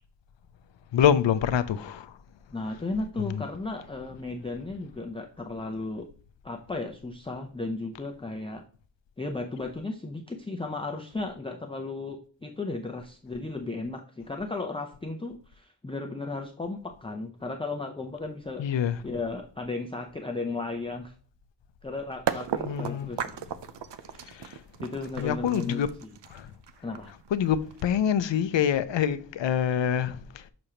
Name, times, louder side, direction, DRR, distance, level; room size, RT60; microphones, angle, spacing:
voice 1, 0.9-2.1 3.2-3.4 18.6-19.0 22.7-23.1 24.2-24.6 25.2-25.9 26.3-26.5 27.3-30.4, left 9 dB, 80° left, 0.6 m, -26 dB
voice 2, 2.5-6.1 6.4-8.6 9.2-18.7 19.0-21.1 21.8-23.2 24.8-25.9 26.8-27.1, left 3 dB, 15° left, 0.5 m, -35 dB
sound 1, 21.8-21.9 22.3-28.1, right 8 dB, 70° right, 0.6 m, -35 dB
6.6 x 6.1 x 2.8 m
wide cardioid pair, 150°, 43 cm